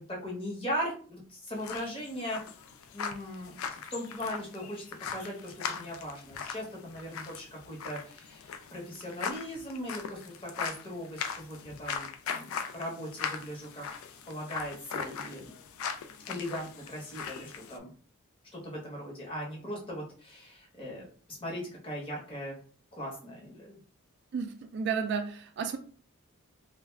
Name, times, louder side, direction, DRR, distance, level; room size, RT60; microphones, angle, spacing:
voice 1, 0.0-2.4 2.9-3.6 3.9-13.9 14.3-15.5 16.3-17.9 18.5-21.1 21.4-22.6 22.9-23.8, equal, 25° left, 0.8 m, -39 dB
sound 1, 1.5-17.8, left 6 dB, 70° left, 0.3 m, -40 dB
voice 2, 24.3-25.8, right 6 dB, 50° right, 0.3 m, -32 dB
2.3 x 2.1 x 3.3 m
head